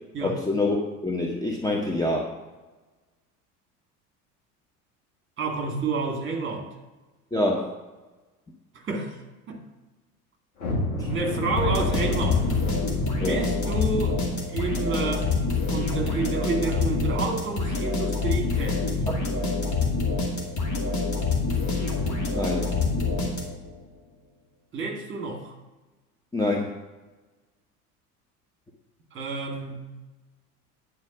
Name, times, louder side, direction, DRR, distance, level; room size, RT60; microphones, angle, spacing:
voice 1, 0.2-2.3 7.3-7.7 10.9-11.1 13.2-13.4 22.3-22.7 26.3-26.7, left 2 dB, 10° left, -1 dB, 1.0 m, -26 dB
voice 2, 5.4-6.7 8.7-9.2 9.5-9.6 11.1-12.5 13.3-14.2 14.5-15.3 15.7-19.0 24.7-25.5 29.1-29.9, right 3 dB, 25° right, 1 dB, 2.1 m, -30 dB
sound 1, 10.6-17.3 17.7-17.8 18.3-18.4 18.9-19.1, left 1 dB, 70° left, 2.4 m, -32 dB
sound 2, 11.6-23.8, left 3 dB, 40° left, 2.4 m, -26 dB
9.5 x 4.8 x 6.0 m, 1.2 s
figure-of-eight pair, 70°, 46 cm